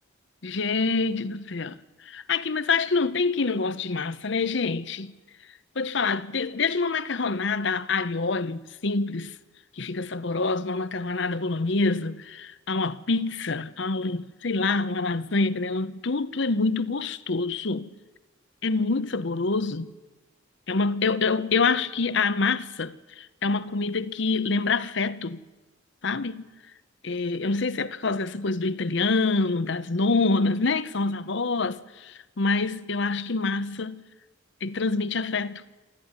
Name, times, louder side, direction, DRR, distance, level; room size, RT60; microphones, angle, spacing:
voice 1, 0.4-1.8 2.1-5.1 5.8-9.3 9.8-17.9 18.6-19.9 20.7-25.4 26.0-26.4 27.0-34.0 34.6-35.6, left 3 dB, 60° left, 0.8 m, -26 dB
27.0 x 13.0 x 9.6 m
head